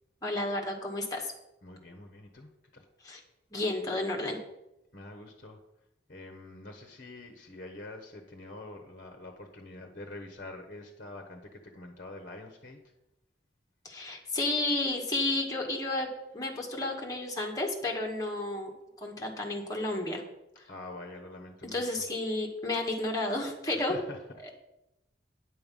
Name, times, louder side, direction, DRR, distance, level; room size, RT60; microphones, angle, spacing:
voice 1, 0.2-1.3 3.0-3.2 3.5-4.4 13.8-16.1 16.3-18.7 19.0-20.2 20.6-20.7 21.7-24.0, left 2 dB, 20° left, 0 dB, 1.6 m, -31 dB
voice 2, 1.6-2.8 4.9-5.6 6.1-12.8 20.7-21.8 23.7-24.2, left 2 dB, 45° left, 5 dB, 1.0 m, -45 dB
9.4 x 6.7 x 5.4 m, 0.91 s
head